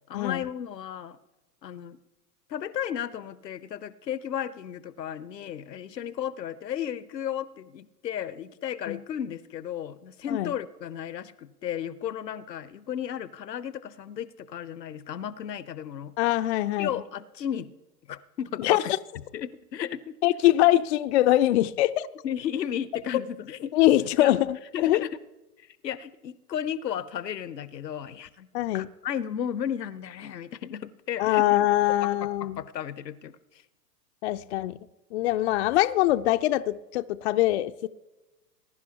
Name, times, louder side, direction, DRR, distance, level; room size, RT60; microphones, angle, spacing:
voice 1, 0.1-1.2 1.6-2.0 2.5-16.1 16.8-17.7 18.1-18.8 19.3-20.2 22.2-23.7 24.2-24.3 24.7-25.2 25.6-28.5 28.7-31.4 32.0-32.1 32.4-33.6, left 9 dB, 85° left, 0.9 m, -34 dB
voice 2, 16.2-16.9 18.6-18.8 20.2-22.1 23.7-25.0 28.5-28.9 31.2-32.6 34.2-34.8 35.1-37.9, left 15 dB, 45° left, 0.5 m, -23 dB
20.5 x 11.0 x 2.9 m
hypercardioid pair, 115°, 48 cm